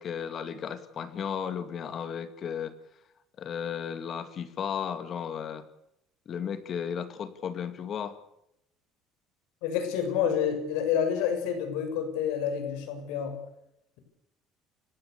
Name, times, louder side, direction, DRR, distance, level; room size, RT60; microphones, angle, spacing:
voice 1, 0.0-2.8 3.4-5.6 6.3-8.2, left 7 dB, 35° left, 11 dB, 2.4 m, -34 dB
voice 2, 9.6-13.4, left 8 dB, 90° left, 7 dB, 7.0 m, -28 dB
29.5 x 16.0 x 7.0 m, 0.82 s
cardioid pair, 155°, 0 cm